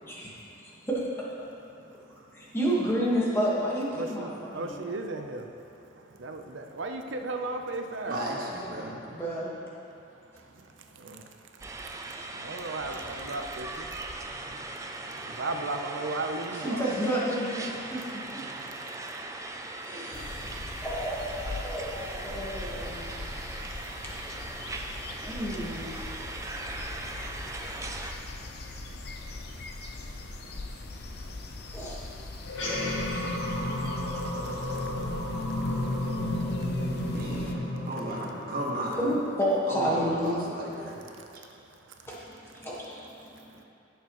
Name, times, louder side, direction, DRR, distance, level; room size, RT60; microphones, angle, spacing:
voice 1, 2.4-4.8 9.1-9.5 16.5-18.4 19.8-20.5 20.8-23.4 25.2-26.0 31.7-32.0 39.0-40.5 42.1-42.2 42.4-43.1, equal, 10° left, -6 dB, 1.5 m, -30 dB
voice 2, 3.9-5.4 6.2-8.2 11.0-11.2 12.3-13.9 15.2-16.8, right 2 dB, 80° right, 4 dB, 0.7 m, -35 dB
voice 3, 8.1-9.0 37.1-39.0 39.7-41.0, right 1 dB, 45° right, -4 dB, 1.7 m, -34 dB
sound 1, 11.6-28.1, right 2 dB, 15° right, 0.4 m, -39 dB
sound 2, 20.1-37.5, left 2 dB, 55° left, 0.7 m, -41 dB
sound 3, 32.4-39.1, left 1 dB, 80° left, 1.9 m, -32 dB
16.5 x 6.7 x 3.1 m, 2.7 s
head